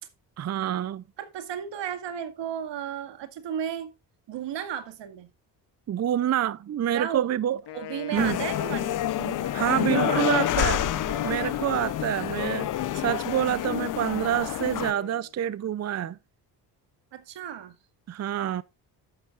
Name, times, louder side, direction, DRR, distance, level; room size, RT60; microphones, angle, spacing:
voice 1, 0.4-1.0 5.9-7.6 8.1-8.4 9.5-10.8 11.2-12.7 12.9-16.2 18.1-18.6, right 11 dB, 40° right, 0.5 m, -27 dB
voice 2, 1.2-3.9 4.3-5.3 6.9-7.3 7.7-11.7 12.3-12.5 17.1-17.8, right 9 dB, 80° right, 2.1 m, -35 dB
Wind instrument woodwind instrument, 7.6-15.3, left 10 dB, 70° left, 1.6 m, -39 dB
sound 1, 8.1-14.9, left 13 dB, 50° left, 0.5 m, -28 dB
12.0 x 9.5 x 2.5 m
cardioid pair, 95°, 43 cm